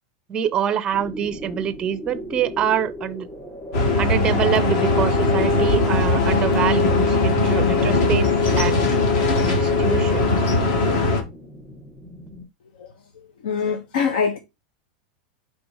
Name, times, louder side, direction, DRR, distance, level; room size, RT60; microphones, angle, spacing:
voice 1, 0.3-3.3 4.0-8.3 8.6-8.9 9.5-10.5, right 9 dB, 20° right, 0.5 m, -25 dB
sound 1, 0.9-12.4, equal, 10° left, 3.1 m, -38 dB
sound 2, 3.7-11.2, left 3 dB, 50° left, 1.7 m, -19 dB
voice 2, 13.4-14.4, left 6 dB, 80° left, 0.9 m, -23 dB
5.1 x 4.0 x 4.7 m
supercardioid pair, 165°, 5 cm